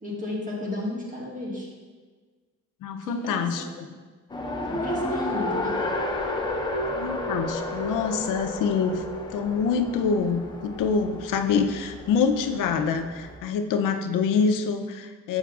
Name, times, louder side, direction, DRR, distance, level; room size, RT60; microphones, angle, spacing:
voice 1, 0.0-1.7 3.0-3.6 4.6-5.8, left 1 dB, 25° right, -5 dB, 1.6 m, -33 dB
voice 2, 2.8-3.9 6.9-9.0 9.3-15.4, left 5 dB, 90° left, 7 dB, 0.5 m, -26 dB
Race car auto racing, 4.3-13.4, left 2 dB, 15° left, 0.5 m, -32 dB
sound 1, 5.5-12.9, right 2 dB, 60° right, 0.5 m, -39 dB
8.1 x 6.0 x 2.3 m, 1.4 s
cardioid pair, 150°, 31 cm